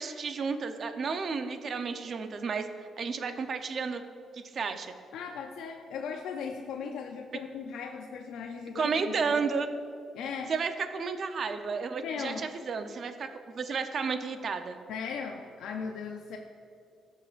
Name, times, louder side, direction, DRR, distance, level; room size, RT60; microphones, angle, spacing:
voice 1, 0.0-4.0 4.3-4.9 8.7-9.7 10.5-13.3 13.5-14.8, right 5 dB, 50° right, 8 dB, 0.7 m, -32 dB
voice 2, 5.1-9.1 10.1-10.5 12.0-12.4 14.9-16.4, left 6 dB, 80° left, 3 dB, 0.5 m, -37 dB
18.5 x 6.4 x 2.5 m, 2.5 s
cardioid pair, 90°, 0 cm